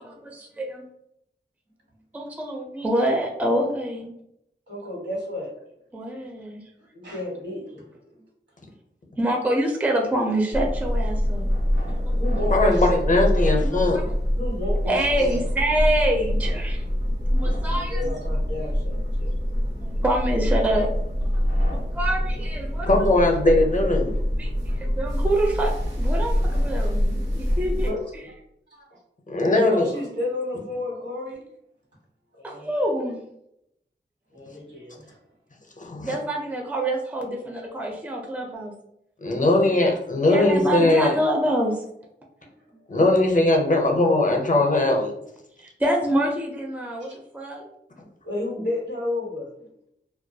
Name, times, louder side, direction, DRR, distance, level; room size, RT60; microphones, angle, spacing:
voice 1, 0.0-0.8 2.1-4.1 5.9-6.6 9.2-11.5 13.6-13.8 14.9-16.8 17.3-18.1 19.8-20.9 21.9-22.9 24.4-24.5 24.8-25.7 26.0-27.9 32.4-33.2 36.0-38.7 40.3-41.8 45.8-47.7, right 1 dB, 10° right, 0 dB, 0.4 m, -26 dB
voice 2, 4.7-5.5 6.9-7.9 11.9-12.9 14.4-15.4 17.4-19.3 21.9-22.0 27.8-28.0 29.7-31.4 32.3-32.7 34.3-35.2 36.0-36.1 39.3-39.4 42.7-42.8 48.2-49.7, left 1 dB, 70° right, -4 dB, 1.2 m, -32 dB
sound 1, 10.5-27.9, equal, 85° right, 1.0 m, -25 dB
voice 3, 12.5-14.0 22.9-24.1 29.3-29.9 35.8-36.2 39.2-41.2 42.9-45.1, left 2 dB, 45° left, 1 dB, 0.5 m, -20 dB
2.2 x 2.2 x 2.6 m, 0.79 s
wide cardioid pair, 65°, 19 cm